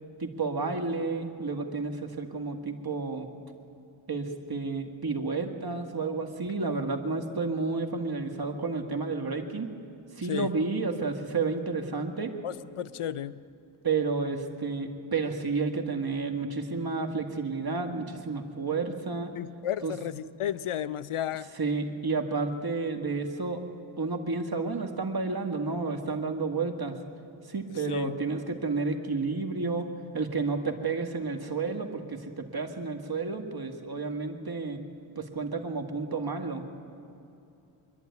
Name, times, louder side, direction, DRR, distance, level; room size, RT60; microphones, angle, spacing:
voice 1, 0.2-3.3 4.1-9.7 10.2-12.3 13.8-19.3 19.8-19.9 21.5-23.6 24.0-27.0 27.5-29.9 30.1-34.8 35.2-36.7, right 4 dB, 50° right, 5 dB, 1.9 m, -31 dB
voice 2, 12.4-13.4 19.4-21.5 27.9-28.2, left 10 dB, 85° left, 15 dB, 0.7 m, -33 dB
25.0 x 11.0 x 9.5 m, 2.7 s
cardioid pair, 65°, 49 cm